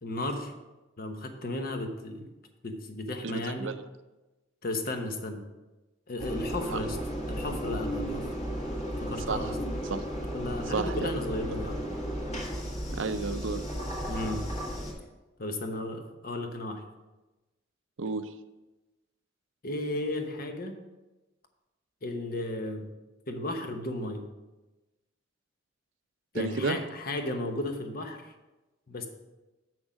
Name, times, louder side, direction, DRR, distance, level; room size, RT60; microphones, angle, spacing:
voice 1, 0.0-0.5 1.0-2.3 2.6-3.7 4.6-5.4 6.1-7.0 7.3-8.4 9.0-9.6 10.3-11.8 14.1-14.4 15.4-16.8 19.6-20.8 22.0-22.9 23.3-24.3 26.3-28.3 28.9-29.1, left 1 dB, 50° left, 5 dB, 1.0 m, -34 dB
voice 2, 3.2-3.8 6.7-6.8 9.3-9.5 9.9-10.0 10.7-11.1 12.9-13.6 18.0-18.3 26.3-26.8, right 4 dB, 70° right, 10 dB, 0.5 m, -32 dB
Engine, 6.2-14.9, equal, 35° left, 1.9 m, -34 dB
7.4 x 6.2 x 5.1 m, 1.1 s
head